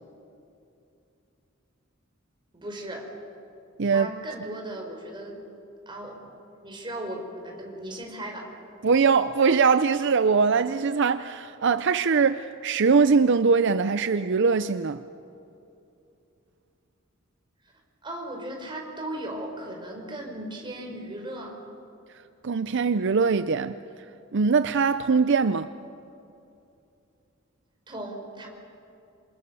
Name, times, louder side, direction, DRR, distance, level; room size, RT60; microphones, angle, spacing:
voice 1, 2.5-3.1 3.9-5.4 5.8-6.2 6.6-8.5 18.0-21.6 27.9-28.5, right 1 dB, 25° right, 4.9 m, -36 dB
voice 2, 8.8-15.0 22.4-23.8 24.3-25.7, right 5 dB, 60° right, 0.6 m, -22 dB
27.5 x 27.5 x 7.0 m
head